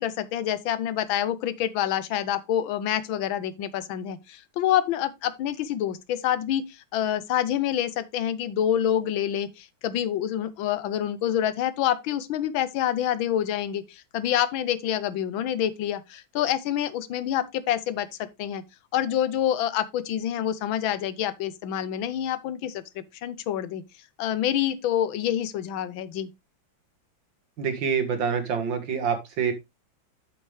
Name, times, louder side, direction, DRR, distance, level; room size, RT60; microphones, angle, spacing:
voice 1, 0.0-18.6 18.9-23.8 24.2-26.3, left 10 dB, 90° left, 1.6 m, -27 dB
voice 2, 27.6-29.5, right 6 dB, 70° right, 2.3 m, -26 dB
8.4 x 7.0 x 3.2 m
omnidirectional pair, 2.1 m